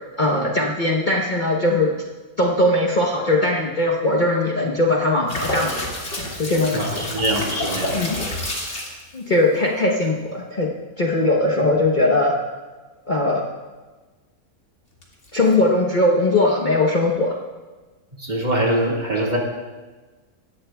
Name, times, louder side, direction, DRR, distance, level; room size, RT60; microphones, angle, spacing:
voice 1, 0.2-1.9 2.4-5.7 6.4-7.0 7.9-8.2 9.1-10.7 11.0-12.4 13.1-13.5 15.3-17.4, left 2 dB, 35° left, -2 dB, 1.0 m, -20 dB
sound 1, 5.3-9.0 15.0-15.6, left 1 dB, 55° left, 2.6 m, -28 dB
voice 2, 6.7-8.3 18.2-19.4, right 1 dB, 30° right, -2 dB, 2.0 m, -23 dB
18.0 x 13.0 x 2.3 m, 1.3 s
omnidirectional pair, 1.6 m